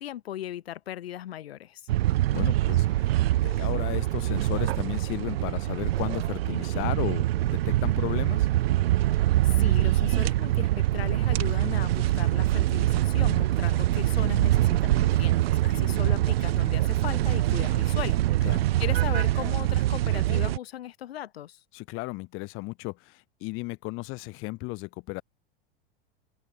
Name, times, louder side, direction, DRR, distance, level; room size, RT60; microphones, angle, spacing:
voice 1, 0.0-1.8 9.4-18.5 18.8-21.6, left 12 dB, 85° left, 1.5 m, -37 dB
sound 1, 1.9-20.6, right 15 dB, 85° right, 0.6 m, -24 dB
voice 2, 2.3-3.1 3.4-8.5 15.7-16.2 18.4-18.7 21.7-25.2, left 24 dB, 45° left, 1.2 m, -35 dB
open air
hypercardioid pair, 120°, 30 cm